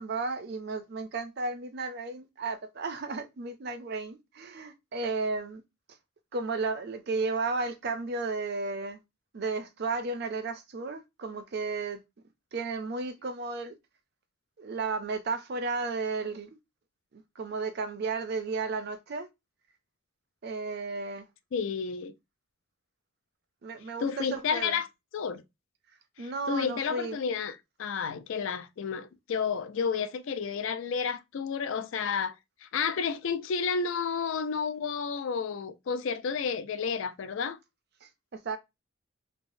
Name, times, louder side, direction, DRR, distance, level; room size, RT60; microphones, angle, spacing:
voice 1, 0.0-5.6 6.3-9.0 9.3-12.0 12.5-13.7 14.6-16.6 17.1-19.3 20.4-21.3 23.6-24.8 26.2-27.2 38.0-38.6, right 3 dB, 50° right, 0.4 m, -33 dB
voice 2, 21.5-22.1 24.0-24.9 25.1-25.4 26.2-27.5 27.8-32.4 32.6-37.6, left 6 dB, 65° left, 0.4 m, -31 dB
3.2 x 2.0 x 2.6 m
head